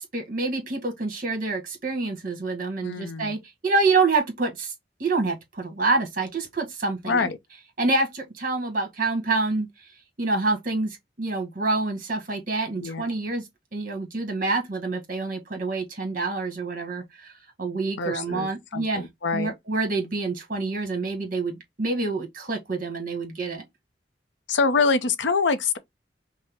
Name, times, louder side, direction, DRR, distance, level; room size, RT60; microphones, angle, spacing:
voice 1, 0.0-4.7 5.0-7.3 7.8-9.9 10.2-13.5 13.7-19.1 19.3-23.6, right 3 dB, 50° right, 1.5 m, -27 dB
voice 2, 2.8-3.4 7.1-7.4 12.8-13.0 18.0-19.5 24.5-25.8, left 4 dB, 80° left, 0.6 m, -25 dB
5.3 x 2.1 x 3.5 m
head